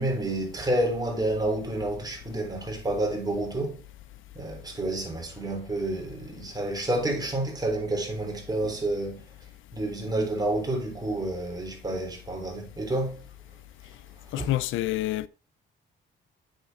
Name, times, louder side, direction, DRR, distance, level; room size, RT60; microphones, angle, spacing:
voice 1, 0.0-3.8 4.4-9.2 9.7-13.2 14.4-14.5, right 1 dB, 20° right, 3.4 m, -29 dB
voice 2, 14.3-15.3, left 15 dB, 85° left, 0.5 m, -27 dB
7.8 x 6.6 x 4.2 m
cardioid pair, 90°, 20 cm